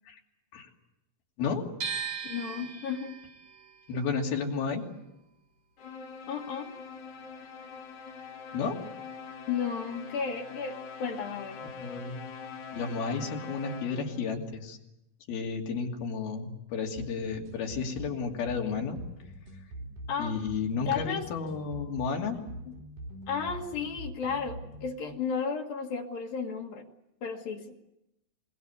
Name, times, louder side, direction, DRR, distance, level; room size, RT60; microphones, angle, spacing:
sound 1, 1.8-7.8 8.1-9.4, right 7 dB, 90° right, 7.0 m, -41 dB
voice 1, 2.2-3.2 6.3-6.7 9.5-11.6 20.1-20.4 20.9-21.3 23.3-26.9 27.2-27.8, left 6 dB, 75° left, 1 dB, 3.3 m, -33 dB
voice 2, 3.9-4.8 8.5-8.8 11.6-12.2 12.7-14.8 15.3-19.0 20.2-22.4, left 5 dB, 90° left, 1 dB, 4.7 m, -32 dB
sound 2, 5.8-14.3, left 5 dB, 60° left, 2.5 m, -44 dB
sound 3, 17.0-25.0, right 1 dB, 65° right, 6.2 m, -44 dB
25.5 x 22.0 x 8.3 m, 0.88 s
omnidirectional pair, 4.2 m